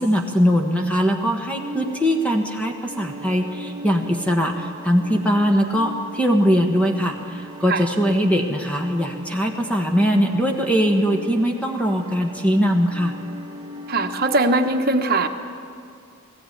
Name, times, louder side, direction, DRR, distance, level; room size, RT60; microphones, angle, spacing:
voice 1, 0.0-13.1, equal, 5° left, 3 dB, 1.3 m, -21 dB
sound 1, 1.6-14.7, equal, 20° right, 1.2 m, -39 dB
voice 2, 13.9-15.3, right 2 dB, 45° right, 6 dB, 1.1 m, -20 dB
20.0 x 15.0 x 9.3 m, 2.4 s
head